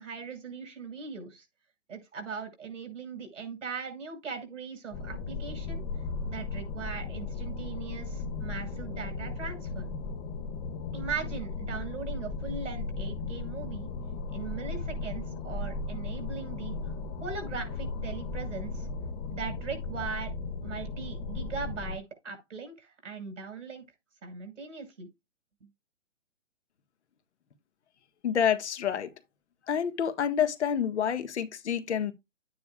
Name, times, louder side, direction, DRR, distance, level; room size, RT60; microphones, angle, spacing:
voice 1, 0.0-1.5 1.9-5.8 6.2-9.9 10.9-13.9 14.3-16.8 17.2-18.9 19.3-20.3 20.6-23.8 24.2-25.1, right 5 dB, 75° right, 6.0 m, -39 dB
sound 1, 4.9-22.0, left 3 dB, 20° left, 1.1 m, -36 dB
voice 2, 28.2-29.1 29.7-32.1, left 8 dB, 60° left, 1.6 m, -28 dB
11.5 x 9.4 x 2.4 m
hypercardioid pair, 155°, 38 cm